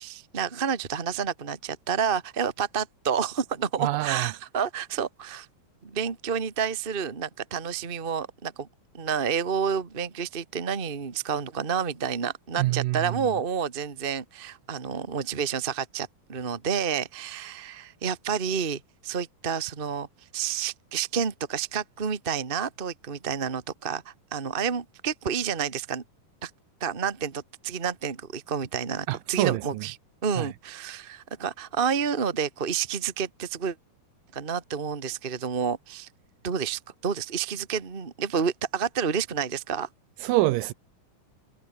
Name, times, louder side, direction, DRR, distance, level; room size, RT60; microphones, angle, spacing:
voice 1, 0.0-5.5 5.8-8.7 8.9-20.1 20.3-26.0 26.4-26.5 26.8-29.9 30.2-33.7 34.3-36.1 36.4-39.9, right 7 dB, 40° right, 0.8 m, -29 dB
voice 2, 3.8-4.3 12.6-13.2 29.1-29.9 30.4-30.5 40.2-40.7, right 17 dB, 80° right, 2.2 m, -26 dB
omnidirectional pair, 4.3 m